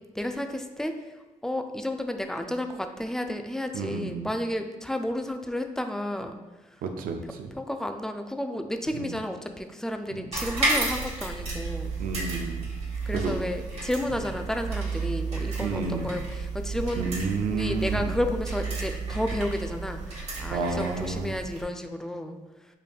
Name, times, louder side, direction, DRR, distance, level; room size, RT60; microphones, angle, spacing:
voice 1, 0.1-1.0 1.4-6.4 6.6-6.8 7.6-12.0 13.1-17.1 17.5-22.4, left 1 dB, 5° left, 6 dB, 0.4 m, -32 dB
voice 2, 3.7-4.3 6.8-7.5 9.0-9.1 10.1-10.3 12.0-12.7 13.1-13.4 15.6-16.1 17.0-18.1 20.5-21.3, right 4 dB, 85° right, 5 dB, 0.4 m, -30 dB
sound 1, 10.3-21.6, right 3 dB, 45° right, 1.5 m, -32 dB
5.1 x 2.6 x 2.3 m, 1.1 s
supercardioid pair, 50°, 15 cm